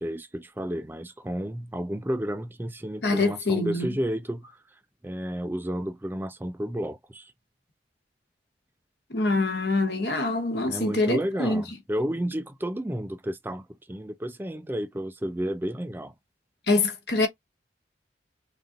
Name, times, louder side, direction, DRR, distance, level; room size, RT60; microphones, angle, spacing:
voice 1, 0.0-4.5 5.0-7.3 10.7-16.1, equal, 10° right, 0.4 m, -31 dB
voice 2, 3.0-3.9 9.1-11.6 16.7-17.3, left 2 dB, 65° left, 1.1 m, -25 dB
3.8 x 2.5 x 3.7 m
head